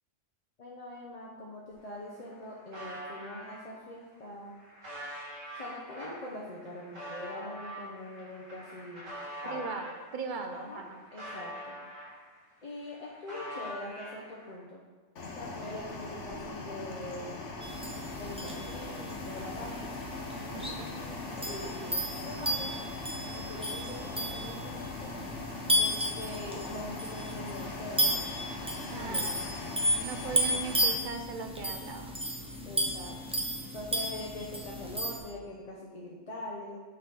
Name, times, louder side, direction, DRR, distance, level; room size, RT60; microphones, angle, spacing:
voice 1, 0.6-4.5 5.5-9.1 9.4-9.7 10.5-10.8 11.1-11.8 12.6-14.8 15.4-17.5 18.1-20.0 20.5-22.8 23.3-25.1 25.8-28.4 28.8-29.5 32.6-33.4 33.7-36.8, left 1 dB, 40° left, -4 dB, 0.7 m, -43 dB
sound 1, 1.7-1.8 2.0-3.6 4.2-10.0 10.5-12.4 12.7-14.5, equal, 90° right, 2.5 m, -44 dB
voice 2, 9.5-11.0 20.3-20.8 28.9-32.2, right 5 dB, 55° right, 5 dB, 0.6 m, -39 dB
sound 2, 15.2-31.0, left 2 dB, 70° left, 1.2 m, -41 dB
sound 3, 17.6-35.2, equal, 10° right, 0.3 m, -33 dB
8.7 x 4.0 x 3.9 m, 1.4 s
omnidirectional pair, 1.3 m